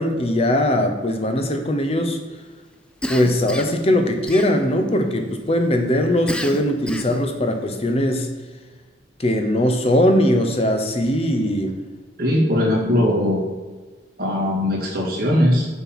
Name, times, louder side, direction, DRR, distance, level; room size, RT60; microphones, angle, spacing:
voice 1, 0.0-2.2 3.1-8.3 9.2-11.8, left 1 dB, 30° left, 5 dB, 0.8 m, -20 dB
Cough, 3.0-3.8 4.3-4.9 6.3-7.3, equal, 5° left, 0.4 m, -30 dB
voice 2, 12.2-13.4 14.2-15.7, left 1 dB, 50° right, -4 dB, 2.3 m, -19 dB
6.9 x 4.5 x 5.9 m, 1.4 s
head